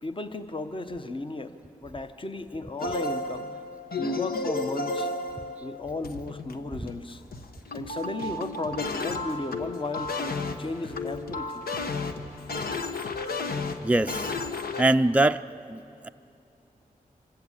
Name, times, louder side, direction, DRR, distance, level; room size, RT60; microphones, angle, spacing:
voice 1, 0.0-3.5 4.0-5.1 5.6-7.2 7.7-11.7, left 2 dB, 35° left, 9 dB, 1.1 m, -35 dB
sound 1, 2.8-14.8, left 2 dB, 85° left, 1.1 m, -33 dB
voice 2, 13.8-14.3 14.8-15.4 15.7-16.1, right 2 dB, 10° right, 8 dB, 0.4 m, -23 dB
25.0 x 15.0 x 8.9 m, 2.6 s
cardioid pair, 55°, 15 cm